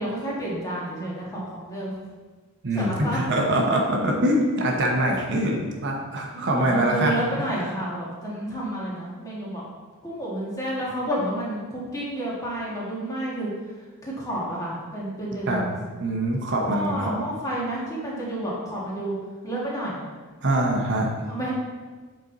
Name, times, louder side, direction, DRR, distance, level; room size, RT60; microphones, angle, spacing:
voice 1, 0.0-2.0 2.7-3.2 6.3-9.6 10.0-13.5 14.0-15.7 16.6-19.2 19.4-20.0 21.3-21.5, right 1 dB, 15° left, -6 dB, 1.7 m, -30 dB
voice 2, 2.6-7.5 15.5-15.6 16.0-17.1 20.4-21.1, right 1 dB, 55° right, 0 dB, 0.9 m, -24 dB
7.7 x 4.4 x 3.9 m, 1.4 s
head